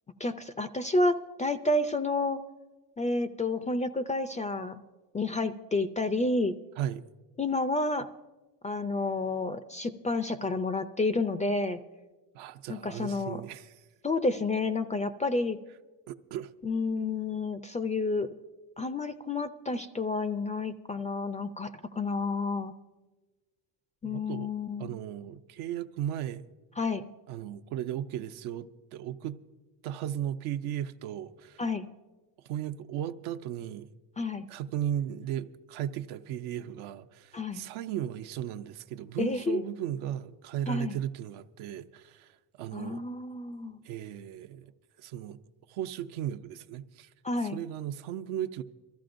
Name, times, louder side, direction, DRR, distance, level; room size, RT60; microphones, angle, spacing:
voice 1, 0.2-2.4 3.0-4.8 5.1-6.5 7.4-8.1 8.6-11.8 12.7-13.4 14.0-15.6 16.6-18.3 18.8-22.7 24.0-24.9 26.8-27.1 31.6-31.9 34.2-34.5 37.3-37.6 39.2-39.6 40.7-41.0 42.7-43.8 47.2-47.6, left 2 dB, 15° left, 0.3 m, -30 dB
voice 2, 12.3-13.8 16.1-16.5 24.0-24.5 24.8-26.4 27.3-29.4 29.8-31.6 32.5-33.9 34.5-42.3 42.6-43.0 43.8-44.7 45.0-45.4 45.7-47.1 47.4-48.6, right 11 dB, 75° right, 0.7 m, -36 dB
23.0 x 14.0 x 2.6 m
supercardioid pair, 80°, 49 cm